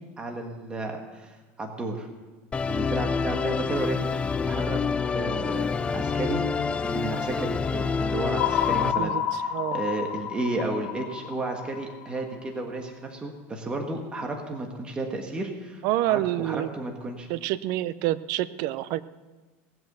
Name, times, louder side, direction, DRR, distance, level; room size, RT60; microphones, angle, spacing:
voice 1, 0.2-2.1 2.7-4.8 5.1-6.4 6.8-17.3, right 2 dB, 15° right, 2 dB, 1.5 m, -33 dB
Musical instrument, 2.5-8.9, left 5 dB, 15° left, 0.4 m, -27 dB
sound 1, 8.4-12.6, left 10 dB, 75° left, 1.7 m, -30 dB
voice 2, 15.8-16.7 17.3-19.0, right 15 dB, 55° right, 16 dB, 0.6 m, -27 dB
18.0 x 8.0 x 6.8 m, 1.3 s
supercardioid pair, 145°, 7 cm